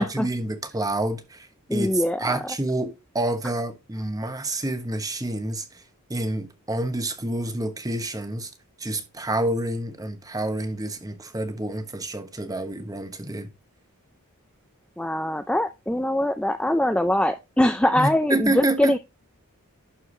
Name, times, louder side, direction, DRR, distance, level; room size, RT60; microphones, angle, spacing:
voice 1, 0.0-1.9 2.2-5.8 6.1-8.5 8.8-13.5 18.0-19.0, right 1 dB, 15° right, 1.1 m, -28 dB
voice 2, 1.7-2.6 15.0-19.0, left 1 dB, 5° left, 0.4 m, -23 dB
11.5 x 4.6 x 3.2 m
head